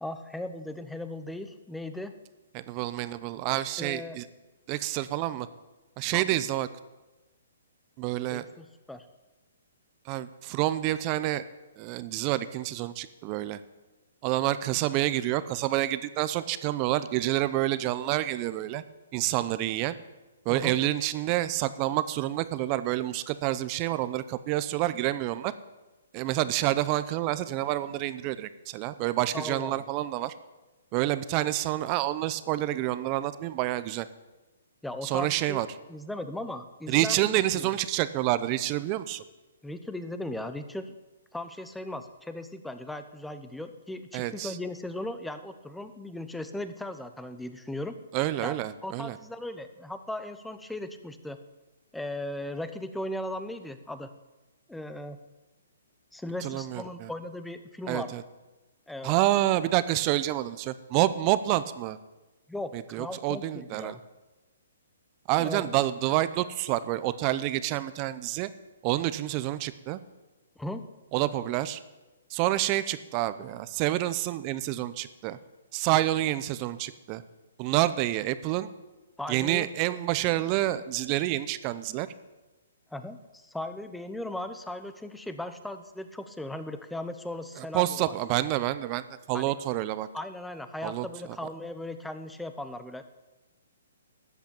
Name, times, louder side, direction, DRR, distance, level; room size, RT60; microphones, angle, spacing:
voice 1, 0.0-2.2 3.8-4.2 6.1-6.5 8.3-9.1 14.7-14.8 20.5-20.8 29.3-29.8 34.8-35.6 35.9-37.7 39.6-40.9 41.3-47.9 48.4-48.6 48.8-51.4 51.9-54.1 54.7-55.2 56.1-58.1 58.9-59.1 62.5-64.0 65.4-65.7 70.6-70.9 79.2-79.7 82.9-88.1 89.3-89.5 90.1-93.1, left 1 dB, 5° left, 10 dB, 0.9 m, -37 dB
voice 2, 2.5-4.3 4.7-5.5 6.0-6.7 8.0-8.4 10.1-11.4 11.8-13.6 14.2-18.8 19.1-20.0 20.4-25.5 26.1-30.3 30.9-34.1 35.0-35.7 36.9-39.2 44.1-44.6 48.1-49.2 56.4-57.1 57.9-58.2 59.0-62.0 62.7-64.0 65.3-68.5 68.8-70.0 71.1-71.8 72.3-75.4 75.7-77.2 77.6-78.7 79.3-82.1 87.6-90.1 90.8-91.4, right 15 dB, 35° right, 14 dB, 0.7 m, -28 dB
13.0 x 8.2 x 8.7 m, 1.1 s
hypercardioid pair, 140°, 0 cm